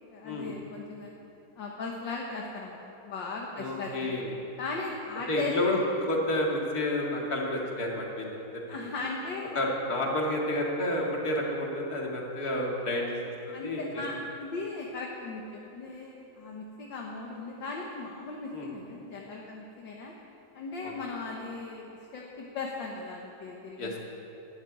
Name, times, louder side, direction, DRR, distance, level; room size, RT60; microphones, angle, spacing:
voice 1, 0.1-1.1 1.6-2.8 3.0-4.2 4.6-5.5 8.7-9.6 13.5-20.1 20.5-24.0, left 3 dB, 60° left, -1 dB, 1.9 m, -38 dB
voice 2, 3.6-4.5 5.3-8.3 8.5-8.6 9.5-13.2 13.5-14.0 18.5-18.7 20.8-20.9 23.8-24.0, left 1 dB, 45° left, -2 dB, 2.7 m, -30 dB
12.5 x 11.5 x 9.4 m, 3.0 s
omnidirectional pair, 2.3 m